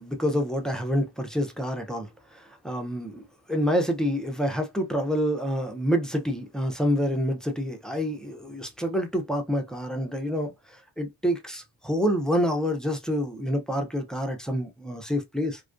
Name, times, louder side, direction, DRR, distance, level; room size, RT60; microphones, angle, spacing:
voice 1, 0.0-15.6, equal, ahead, 0.4 m, -27 dB
2.3 x 2.2 x 2.4 m
wide cardioid pair, 100°, 50 cm